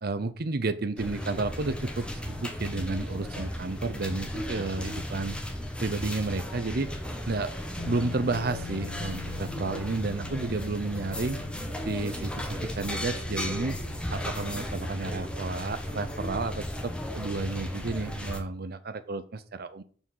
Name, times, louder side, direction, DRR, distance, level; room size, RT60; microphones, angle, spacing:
voice 1, 0.0-5.4 5.8-6.9 7.3-7.5 7.8-11.4 11.9-13.8 14.1-19.8, right 3 dB, 60° right, 12 dB, 0.7 m, -32 dB
sound 1, 1.0-18.4, equal, 5° left, 1.6 m, -35 dB
Bass guitar, 7.8-14.0, left 8 dB, 55° left, 2.0 m, -46 dB
7.1 x 6.2 x 7.3 m, 0.43 s
head